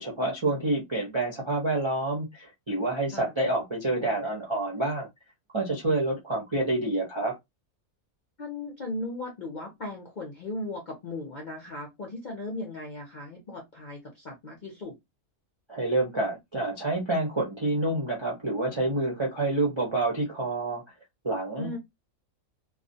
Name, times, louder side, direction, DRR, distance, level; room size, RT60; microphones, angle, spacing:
voice 1, 0.0-5.1 5.5-7.4 15.7-20.8 21.2-21.8, right 2 dB, 40° right, 0.4 m, -28 dB
voice 2, 8.4-14.9 21.6-21.8, left 2 dB, 55° left, 0.5 m, -37 dB
2.3 x 2.0 x 2.6 m
omnidirectional pair, 1.5 m